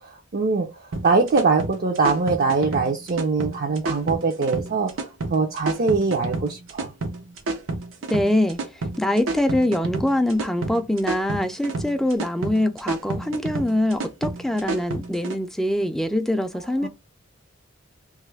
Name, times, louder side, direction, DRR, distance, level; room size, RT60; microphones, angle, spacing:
voice 1, 0.0-6.9 16.8-16.9, right 4 dB, 50° right, 0.5 m, -23 dB
sound 1, 0.9-15.4, right 3 dB, 90° right, 0.7 m, -30 dB
voice 2, 8.1-8.6 9.0-16.9, left 1 dB, ahead, 0.3 m, -23 dB
3.0 x 2.4 x 3.2 m
head